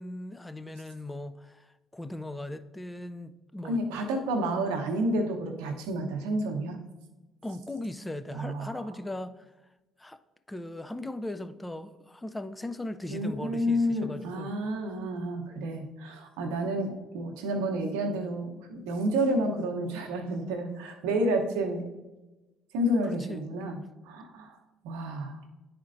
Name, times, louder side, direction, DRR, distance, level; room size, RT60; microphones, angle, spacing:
voice 1, 0.0-3.8 7.4-9.5 10.0-10.2 10.5-14.6 23.0-23.4, left 1 dB, 15° left, 0.5 m, -38 dB
voice 2, 3.6-6.8 8.3-8.7 13.1-21.8 22.7-23.8 24.0-24.6 24.8-25.4, right 1 dB, 75° right, 0.8 m, -30 dB
10.0 x 4.3 x 2.6 m
hypercardioid pair, 50°, 0 cm